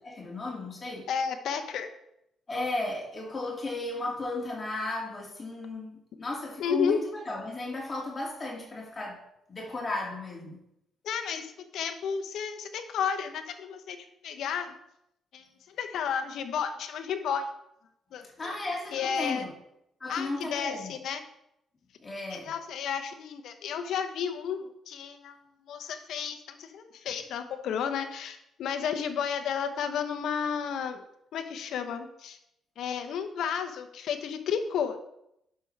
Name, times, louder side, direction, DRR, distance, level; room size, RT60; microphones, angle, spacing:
voice 1, 0.0-1.1 2.5-9.2 9.5-10.6 18.4-19.5 20.0-20.9 22.0-22.5, left 2 dB, 30° left, -2 dB, 2.4 m, -34 dB
voice 2, 1.1-1.9 6.6-7.0 11.0-14.8 15.3-17.5 18.1-18.5 18.9-19.4 20.1-21.2 22.3-25.4 25.7-31.0 31.3-32.4 32.8-35.0, left 7 dB, 75° left, 7 dB, 0.9 m, -32 dB
11.5 x 6.1 x 3.4 m, 0.79 s
cardioid pair, 90°, 0 cm